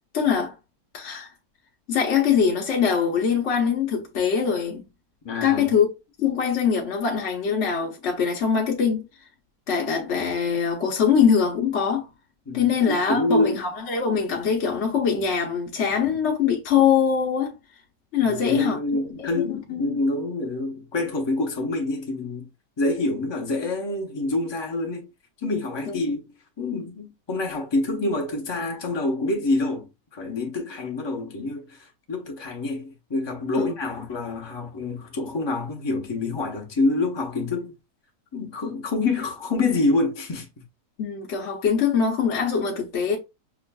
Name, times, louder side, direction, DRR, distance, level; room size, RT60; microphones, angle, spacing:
voice 1, 0.1-0.5 0.9-1.3 1.9-4.8 5.4-5.9 6.2-9.0 9.7-12.1 12.5-17.6 18.1-19.3 19.7-20.0 33.6-33.7 41.0-43.2, left 7 dB, 55° left, 0.9 m, -23 dB
voice 2, 5.2-5.7 12.5-13.6 16.0-16.2 18.2-22.5 22.8-25.1 25.4-37.7 38.3-40.5, left 2 dB, 30° left, 0.4 m, -27 dB
5.9 x 2.4 x 2.2 m
omnidirectional pair, 1.8 m